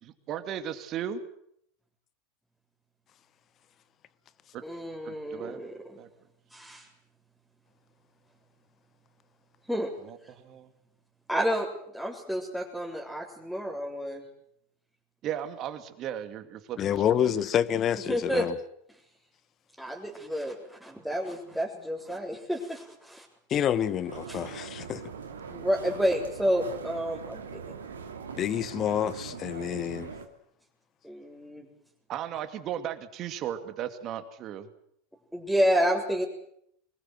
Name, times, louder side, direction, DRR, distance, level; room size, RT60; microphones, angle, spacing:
voice 1, 0.0-1.2 4.5-4.6 5.0-5.7 6.0-6.1 10.0-10.7 15.2-17.4 32.1-34.7, right 10 dB, 40° right, 2.6 m, -36 dB
voice 2, 4.6-6.0 6.5-6.9 9.7-9.9 11.3-11.7 11.9-14.3 18.0-18.5 19.8-23.3 24.3-24.5 25.5-27.7 31.0-31.7 35.3-36.2, equal, ahead, 3.9 m, -30 dB
voice 3, 16.8-18.5 23.5-25.0 28.3-30.1, left 10 dB, 35° left, 1.3 m, -28 dB
sound 1, 24.1-30.3, right 6 dB, 80° right, 2.8 m, -41 dB
24.5 x 20.5 x 7.9 m
figure-of-eight pair, 80°, 0 cm